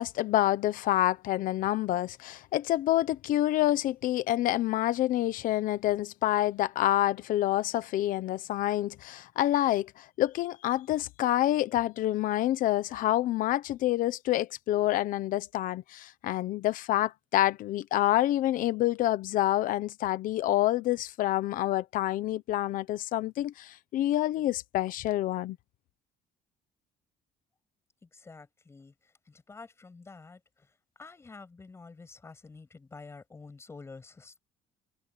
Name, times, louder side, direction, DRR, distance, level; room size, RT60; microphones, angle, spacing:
voice 1, 0.0-25.6, left 14 dB, 60° left, 1.0 m, -27 dB
voice 2, 28.0-34.4, left 4 dB, 15° left, 7.3 m, -49 dB
cardioid pair, 170°, 16 cm